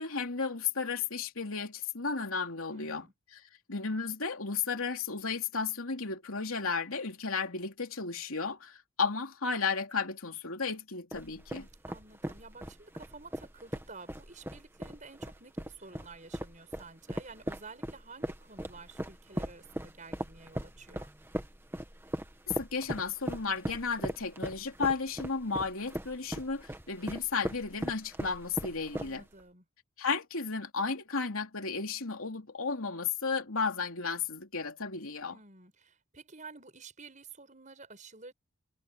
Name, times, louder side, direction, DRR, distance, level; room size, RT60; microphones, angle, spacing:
voice 1, 0.0-3.0 3.3-3.4 3.7-11.7 22.6-29.2 30.0-35.4, left 5 dB, 75° left, 3.0 m, -33 dB
voice 2, 2.7-3.1 11.9-21.1 28.9-29.6 35.3-38.3, right 4 dB, 35° right, 6.1 m, -51 dB
sound 1, 11.1-29.4, equal, 10° right, 1.7 m, -39 dB
head